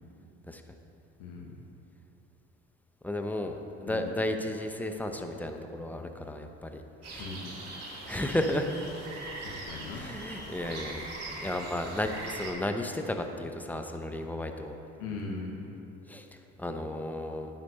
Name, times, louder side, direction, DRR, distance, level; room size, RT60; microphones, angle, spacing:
voice 1, 1.2-1.6 3.9-4.1 7.2-7.6 9.4-10.1 14.2-14.4 15.0-15.7, left 3 dB, 80° left, -1 dB, 1.1 m, -39 dB
voice 2, 3.0-6.8 7.1-7.3 8.1-8.7 9.9-11.1 11.4-14.8 16.1-16.3 16.6-17.5, left 1 dB, 5° left, 5 dB, 0.8 m, -33 dB
sound 1, 7.0-12.5, right 2 dB, 50° right, 2.1 m, -41 dB
9.5 x 4.5 x 6.6 m, 2.9 s
hypercardioid pair, 55°, 33 cm